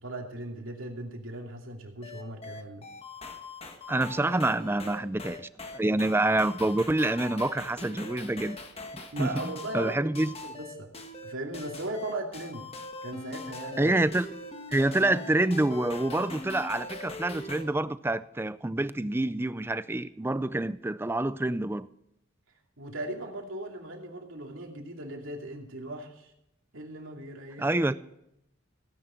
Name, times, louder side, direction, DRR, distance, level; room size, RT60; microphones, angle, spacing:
voice 1, 0.0-2.9 9.1-10.9 11.2-12.7 13.0-13.9 22.8-26.3 26.7-27.7, right 1 dB, 80° right, 2.7 m, -38 dB
sound 1, 2.0-17.6, left 3 dB, 30° left, 1.3 m, -42 dB
voice 2, 3.9-8.6 8.9-9.4 9.7-10.3 13.8-14.3 14.7-21.9 27.6-28.0, right 2 dB, 10° right, 0.4 m, -27 dB
17.0 x 10.0 x 4.4 m
head